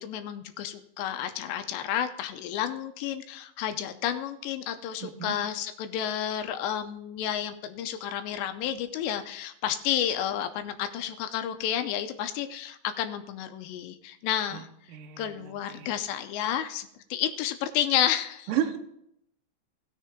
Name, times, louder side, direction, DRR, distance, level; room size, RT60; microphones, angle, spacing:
voice 1, 0.0-14.7 15.2-18.5, left 10 dB, 85° left, 9 dB, 2.9 m, -31 dB
voice 2, 5.0-5.4 14.5-14.6 14.9-15.9 18.5-18.8, right 10 dB, 75° right, 4 dB, 2.1 m, -32 dB
16.5 x 6.7 x 3.6 m, 0.75 s
omnidirectional pair, 5.0 m